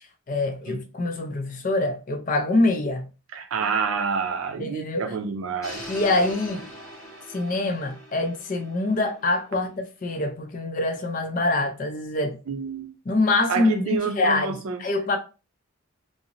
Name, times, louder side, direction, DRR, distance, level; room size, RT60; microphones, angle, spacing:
voice 1, 0.3-3.1 4.6-5.1 5.9-6.7 7.3-12.4 13.1-15.2, left 2 dB, 40° left, 0.4 m, -25 dB
voice 2, 3.3-5.9 12.5-12.9 13.5-14.8, right 5 dB, 70° right, 0.4 m, -28 dB
sound 1, 5.6-9.6, equal, 15° left, 0.8 m, -41 dB
2.8 x 2.0 x 2.5 m
head